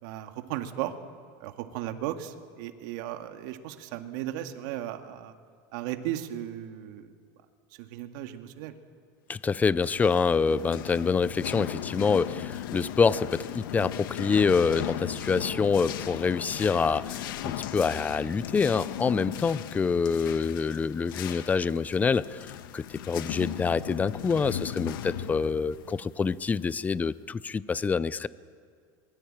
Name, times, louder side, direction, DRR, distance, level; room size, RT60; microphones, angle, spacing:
voice 1, 0.0-0.9 1.4-5.3 5.7-7.1 7.8-8.7, right 12 dB, 65° right, 6 dB, 2.1 m, -36 dB
voice 2, 9.3-28.3, left 5 dB, 15° left, 18 dB, 0.5 m, -26 dB
sound 1, 9.7-27.0, left 11 dB, 85° left, 1.5 m, -37 dB
24.5 x 22.0 x 9.0 m, 2.1 s
supercardioid pair, 140°, 11 cm